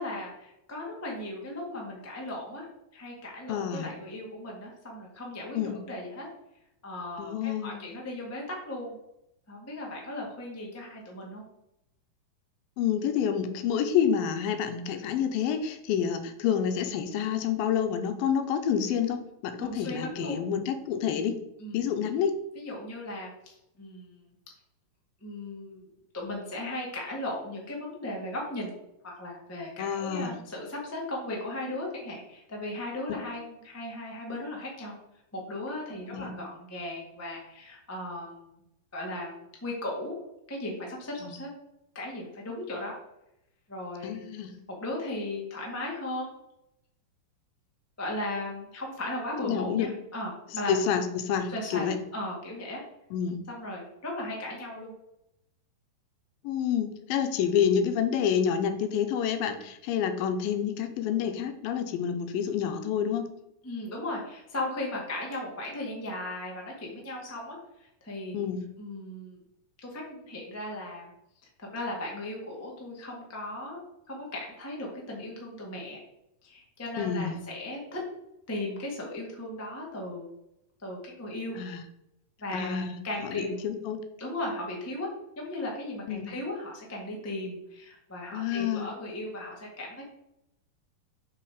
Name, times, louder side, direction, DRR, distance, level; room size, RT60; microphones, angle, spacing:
voice 1, 0.0-2.7 2.9-6.3 6.8-9.0 9.5-11.4 19.6-20.4 21.6-21.9 22.5-24.2 25.2-25.8 26.1-28.7 29.0-34.9 35.3-38.5 38.9-40.1 40.5-41.5 41.9-42.9 43.7-44.2 44.7-46.3 48.0-50.7 51.5-51.9 52.1-52.8 53.5-54.9 63.6-67.6 68.0-68.4 68.8-69.4 69.8-71.1 71.6-73.8 74.1-76.0 76.4-78.0 78.5-80.3 80.8-81.6 82.4-83.6 84.2-85.1 85.4-90.0, left 1 dB, 15° left, -2 dB, 0.4 m, -37 dB
voice 2, 3.5-3.9 5.5-5.8 7.2-7.8 12.8-21.4 21.7-22.3 29.8-30.4 36.1-36.3 41.2-41.3 44.0-44.5 49.5-49.9 50.7-52.0 53.1-53.4 56.4-63.3 68.3-68.6 77.0-77.4 81.5-81.8 82.5-82.9 83.2-84.0 86.1-86.3 88.3-88.9, left 8 dB, 85° left, 7 dB, 2.5 m, -28 dB
5.9 x 5.7 x 4.7 m, 0.84 s
omnidirectional pair, 4.1 m